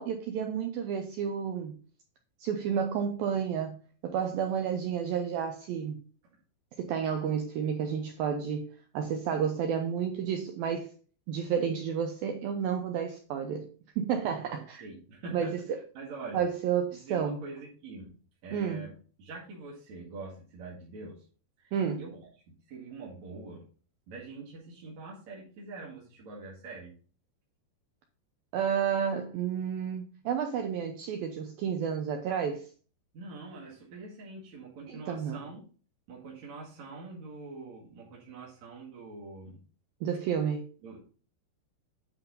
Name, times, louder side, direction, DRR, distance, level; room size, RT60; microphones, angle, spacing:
voice 1, 0.0-1.8 2.4-6.0 6.8-8.7 8.9-10.9 11.3-13.7 14.0-14.8 15.3-15.5 16.3-17.4 18.5-18.8 21.7-22.0 28.5-32.6 34.9-35.4 40.0-40.7, right 7 dB, 80° right, 2.1 m, -31 dB
voice 2, 14.5-16.4 16.9-18.1 18.4-18.9 19.2-21.3 21.6-22.2 22.5-23.6 24.1-26.9 33.1-35.6 36.1-39.6 40.8-41.0, right 3 dB, 50° right, 2.6 m, -44 dB
9.7 x 5.6 x 4.1 m
omnidirectional pair, 5.1 m